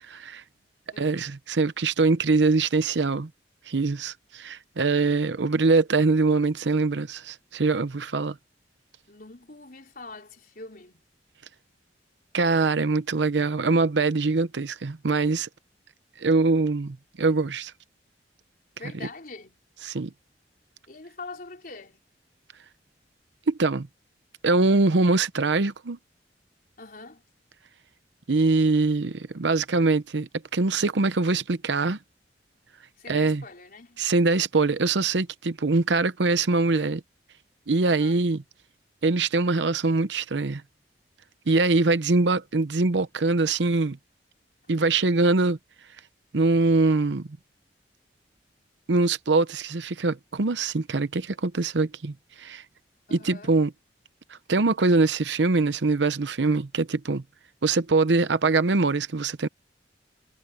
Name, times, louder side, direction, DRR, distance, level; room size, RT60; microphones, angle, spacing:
voice 1, 0.1-0.4 1.0-3.3 3.7-8.3 12.3-15.5 16.2-17.7 19.8-20.1 23.5-23.9 24.4-26.0 28.3-32.0 33.1-33.4 34.0-37.0 37.7-38.4 39.0-40.6 41.5-44.0 44.7-45.6 46.3-47.3 48.9-52.6 53.1-53.7 54.3-57.2 57.6-59.5, right 3 dB, 85° right, 0.8 m, -23 dB
voice 2, 0.9-1.3 9.1-11.0 18.8-19.6 20.9-22.0 26.8-27.2 33.0-34.0 36.7-36.9 37.8-38.2 53.1-53.5, left 3 dB, 50° left, 4.3 m, -44 dB
head